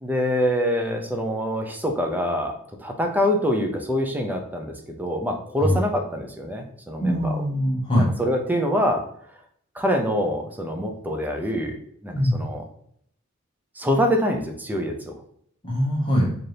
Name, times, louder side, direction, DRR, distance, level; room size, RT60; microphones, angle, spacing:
voice 1, 0.0-7.4 8.2-9.0 9.7-11.8 12.0-12.6 13.8-15.2, equal, 10° right, 3 dB, 0.5 m, -25 dB
voice 2, 7.0-8.1 12.1-12.4 15.6-16.3, equal, 25° left, -4 dB, 0.8 m, -22 dB
4.2 x 2.6 x 3.2 m, 0.66 s
head